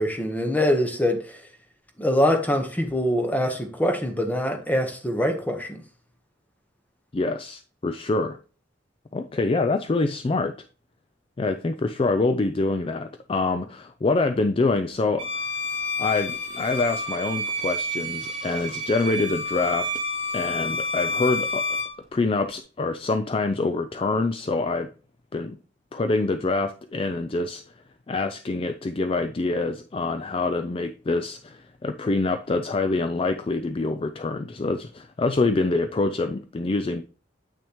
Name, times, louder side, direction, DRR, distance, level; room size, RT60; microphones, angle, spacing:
voice 1, 0.0-1.4 2.0-5.8, equal, 10° left, 1.2 m, -24 dB
voice 2, 7.1-8.4 9.1-10.5 11.4-15.4 16.0-19.9 20.3-21.8 22.1-24.9 25.3-25.6 25.9-27.6 28.1-37.0, left 3 dB, 30° left, 0.4 m, -25 dB
Bowed string instrument, 15.2-22.0, left 1 dB, 30° right, 2.9 m, -29 dB
8.5 x 6.1 x 3.1 m
head